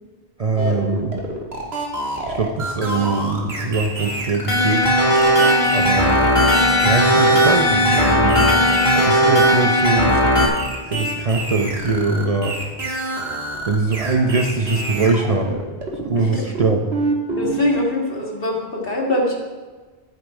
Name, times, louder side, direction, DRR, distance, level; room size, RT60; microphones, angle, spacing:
voice 1, 0.4-1.2 2.3-4.9 5.7-6.2 6.8-8.5 8.9-10.2 10.9-12.6 13.6-15.6 16.0-16.8, right 3 dB, 40° right, 3 dB, 0.7 m, -22 dB
sound 1, 0.6-17.6, right 2 dB, 80° right, 1.8 m, -28 dB
sound 2, 4.5-10.5, equal, 30° left, 1.7 m, -16 dB
voice 2, 16.1-16.4 17.4-19.3, left 1 dB, 60° left, -1 dB, 2.0 m, -22 dB
10.5 x 7.6 x 4.9 m, 1.3 s
omnidirectional pair, 1.1 m